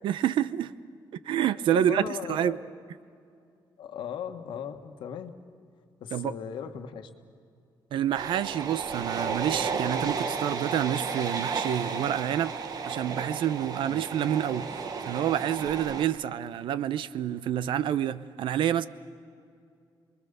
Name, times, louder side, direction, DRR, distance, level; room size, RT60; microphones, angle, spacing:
voice 1, 0.0-0.7 1.3-2.6 6.1-6.3 7.9-12.5 12.9-18.9, right 10 dB, 85° right, 0.7 m, -28 dB
voice 2, 1.7-2.6 3.8-5.3 6.0-7.1 13.8-14.0, left 8 dB, 80° left, 1.4 m, -37 dB
sound 1, 8.1-16.0, right 5 dB, 50° right, 1.2 m, -33 dB
28.0 x 21.5 x 6.8 m
wide cardioid pair, 170°, 8 cm